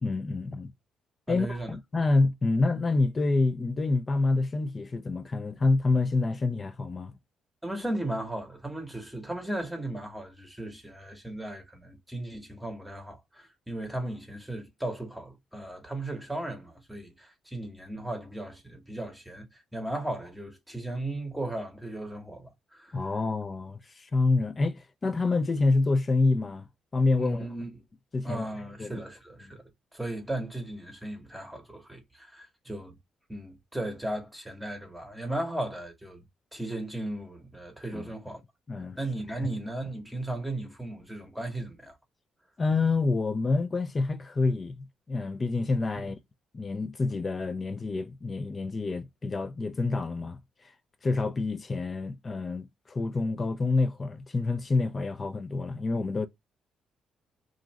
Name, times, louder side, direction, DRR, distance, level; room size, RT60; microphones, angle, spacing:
voice 1, 0.0-0.7 1.3-7.1 22.9-26.7 26.9-27.5 28.1-28.4 28.8-28.9 37.9-38.1 38.7-39.0 39.3-39.4 42.6-46.2 46.5-50.4 50.6-50.7 51.0-56.3, left 3 dB, 30° left, 0.4 m, -27 dB
voice 2, 1.3-1.7 7.6-23.0 27.2-27.8 28.2-29.6 29.9-33.0 33.3-36.2 36.5-38.4 39.0-42.0 46.0-46.1, right 1 dB, 5° right, 1.0 m, -36 dB
2.5 x 2.4 x 3.0 m
cardioid pair, 90°, 0 cm